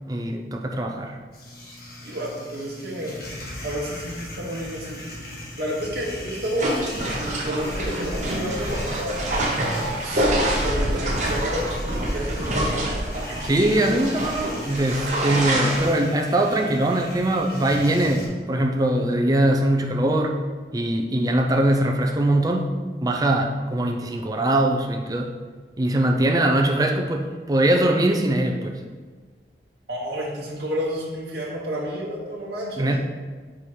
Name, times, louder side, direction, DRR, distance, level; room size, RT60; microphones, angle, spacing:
voice 1, 0.1-1.2 13.4-20.4 20.7-22.7 23.0-25.3 25.8-28.8 32.8-33.0, right 1 dB, 20° right, 3 dB, 0.4 m, -22 dB
sound 1, 1.3-18.3, left 1 dB, 60° left, 1.5 m, -38 dB
voice 2, 2.0-3.1 3.6-5.2 5.6-6.7 7.4-9.2 9.9-12.8 29.9-33.0, equal, 65° right, -5 dB, 0.9 m, -30 dB
sound 2, 6.6-15.9, right 1 dB, 40° right, 0.9 m, -26 dB
4.9 x 4.3 x 4.7 m, 1.5 s
head